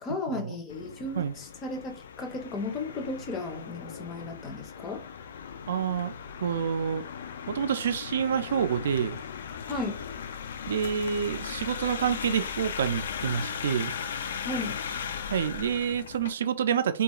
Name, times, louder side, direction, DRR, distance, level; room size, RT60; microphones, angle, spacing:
voice 1, 0.0-5.0 9.7-10.0 14.5-14.8, left 2 dB, 20° left, 0.5 m, -35 dB
sound 1, 0.7-16.3, left 7 dB, 85° left, 0.3 m, -38 dB
voice 2, 5.7-6.1 6.4-7.0 7.5-9.2 10.7-13.9 15.3-17.0, right 8 dB, 85° right, 0.3 m, -28 dB
2.3 x 2.3 x 2.9 m
supercardioid pair, 170°, 0 cm